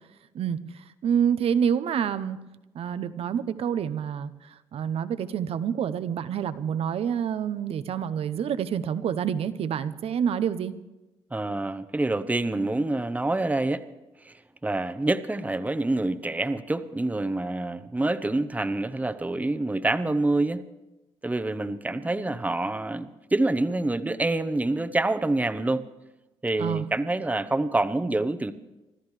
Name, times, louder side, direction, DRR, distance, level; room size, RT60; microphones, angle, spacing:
voice 1, 0.3-2.4 2.7-10.7 26.6-26.8, right 8 dB, 65° right, 13 dB, 0.8 m, -27 dB
voice 2, 11.3-13.8 14.2-20.6 21.2-25.8 26.4-28.5, right 2 dB, 15° right, 10 dB, 1.0 m, -26 dB
26.0 x 13.0 x 3.3 m, 1.0 s
supercardioid pair, 55°, 11 cm